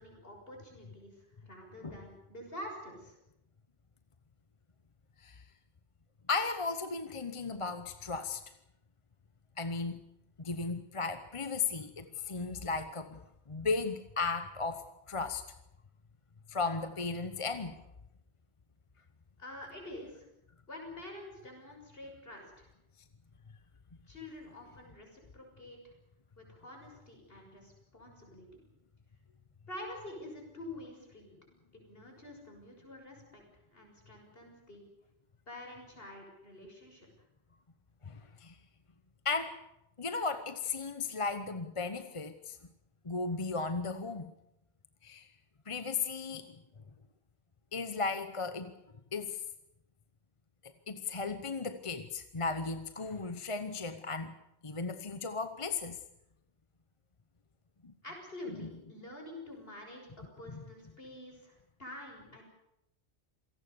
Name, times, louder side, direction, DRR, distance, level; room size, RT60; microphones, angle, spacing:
voice 1, 0.0-3.2 19.4-20.3 20.7-22.7 24.1-25.9 26.4-28.6 29.7-31.4 31.7-33.4 33.7-34.8 35.5-37.1 58.0-62.4, left 1 dB, 60° left, 2 dB, 6.7 m, -47 dB
voice 2, 6.3-8.4 9.6-10.0 10.4-13.2 13.5-15.4 16.5-17.8 38.1-38.6 39.2-39.6 40.0-42.6 43.0-44.3 45.0-45.3 45.7-46.5 47.7-48.7 49.1-49.4 50.9-54.3 54.6-56.0 57.8-57.9, left 4 dB, 30° left, 10 dB, 0.9 m, -35 dB
27.0 x 18.0 x 6.9 m, 0.85 s
omnidirectional pair, 1.1 m